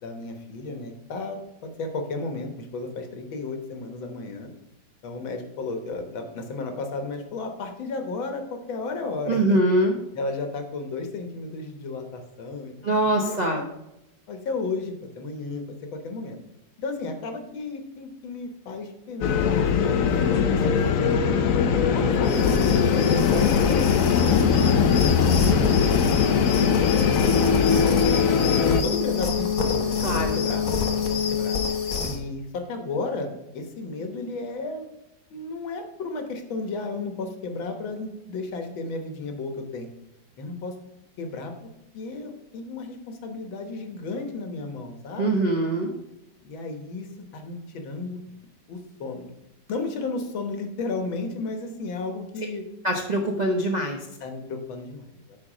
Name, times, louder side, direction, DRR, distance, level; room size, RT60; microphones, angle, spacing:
voice 1, 0.0-4.5 5.0-9.6 10.1-13.7 14.3-16.4 16.8-21.2 21.9-23.1 23.4-28.2 28.8-30.7 31.1-31.6 32.0-34.9 35.3-39.9 40.4-40.7 41.2-41.7 41.9-45.4 46.4-47.1 47.3-48.2 48.7-49.3 49.7-52.6 54.2-55.4, left 3 dB, 85° left, 5 dB, 2.0 m, -34 dB
voice 2, 9.3-10.0 12.8-13.6 30.0-30.4 45.2-45.9 52.8-54.1, right 1 dB, 55° right, 0 dB, 0.4 m, -23 dB
sound 1, 19.2-28.8, left 6 dB, 65° left, 0.8 m, -21 dB
sound 2, 22.2-32.2, left 6 dB, 50° left, 1.4 m, -26 dB
9.3 x 4.7 x 5.0 m, 0.86 s
omnidirectional pair, 2.1 m